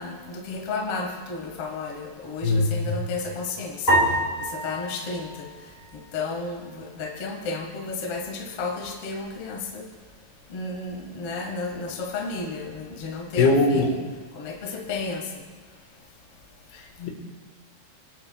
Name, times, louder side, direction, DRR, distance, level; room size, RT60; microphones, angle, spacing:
voice 1, 0.0-3.9 4.4-5.5 6.1-9.9 10.5-14.0 14.3-15.2, left 3 dB, 90° left, 0 dB, 1.2 m, -32 dB
voice 2, 2.4-3.0 13.4-13.9 17.0-17.1, left 3 dB, 65° left, 1 dB, 3.0 m, -20 dB
sound 1, 3.9-6.3, equal, 15° left, 3.9 m, -26 dB
25.0 x 8.5 x 2.3 m, 1.4 s
omnidirectional pair, 5.3 m